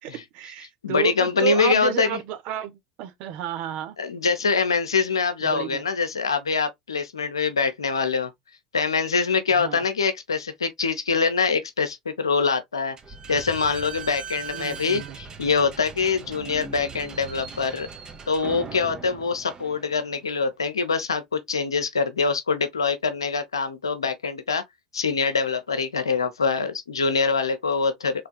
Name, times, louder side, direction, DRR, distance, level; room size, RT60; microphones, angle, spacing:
voice 1, 0.0-4.0 5.4-5.8 9.5-9.8 14.5-15.2, right 12 dB, 60° right, 0.7 m, -31 dB
voice 2, 0.8-2.1 4.0-8.3 8.7-13.0 13.3-17.9 18.3-24.6 24.9-28.3, left 5 dB, 90° left, 0.6 m, -24 dB
Slam / Squeak, 13.0-20.2, right 6 dB, 35° right, 1.0 m, -40 dB
3.4 x 3.1 x 2.2 m
hypercardioid pair, 75°, 2 cm